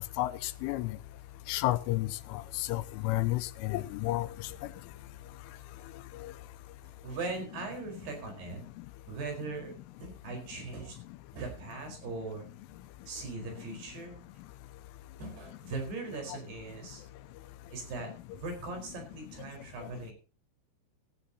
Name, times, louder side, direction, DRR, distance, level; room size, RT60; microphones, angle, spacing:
voice 1, 0.2-0.9 1.5-2.1 2.7-4.3, left 17 dB, 85° left, 3.3 m, -30 dB
voice 2, 7.0-8.6 9.1-9.7 10.0-11.0 11.3-12.5 13.1-14.2 15.2-17.0 17.7-18.1 18.4-20.1, right 3 dB, 55° right, 6.4 m, -39 dB
16.0 x 14.5 x 2.8 m
omnidirectional pair, 5.6 m